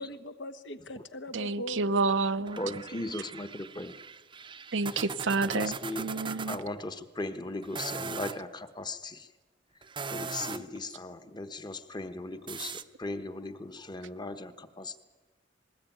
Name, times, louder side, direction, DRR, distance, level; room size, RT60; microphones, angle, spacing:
voice 1, 0.0-1.9 2.9-3.1, left 1 dB, 75° left, 9 dB, 1.3 m, -41 dB
voice 2, 1.3-2.6 4.7-6.6, right 3 dB, 90° right, 11 dB, 0.8 m, -29 dB
sound 1, 2.5-6.6 7.6-8.4 9.8-10.8 12.5-12.8, right 5 dB, 25° right, 0.7 m, -40 dB
voice 3, 2.6-4.0 4.8-5.1 5.4-6.1 6.5-9.3 10.1-15.0, left 2 dB, 25° left, 9 dB, 1.1 m, -38 dB
20.5 x 18.5 x 9.2 m, 1.3 s
head